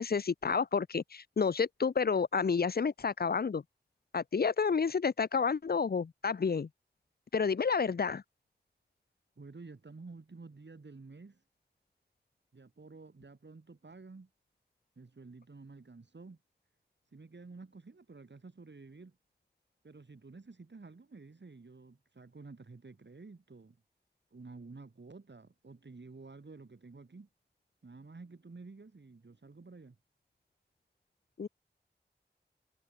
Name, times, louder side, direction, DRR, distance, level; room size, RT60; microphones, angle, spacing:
voice 1, 0.0-3.6 4.1-6.7 7.3-8.2 31.4-31.5, left 5 dB, 60° left, 0.6 m, -30 dB
voice 2, 9.4-11.4 12.5-14.3 15.0-16.4 17.1-19.2 19.8-23.8 24.3-27.3 27.8-30.0, right 3 dB, 80° right, 8.0 m, -51 dB
wide cardioid pair, 60°, 18 cm